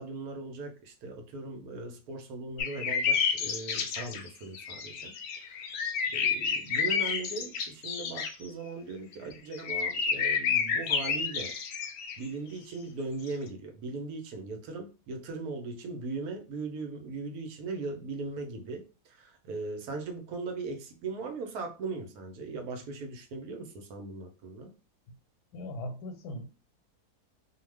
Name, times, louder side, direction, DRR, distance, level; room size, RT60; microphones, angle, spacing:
voice 1, 0.0-5.1 5.4-5.7 6.1-11.5 12.2-24.7, right 3 dB, 75° right, 4 dB, 1.1 m, -39 dB
sound 1, 2.6-4.3 4.5-8.3 9.1-12.2 13.3-13.4, left 6 dB, 70° left, 0.9 m, -30 dB
voice 2, 25.5-26.5, left 1 dB, 90° left, 7 dB, 1.2 m, -39 dB
2.8 x 2.1 x 3.2 m, 0.32 s
omnidirectional pair, 1.6 m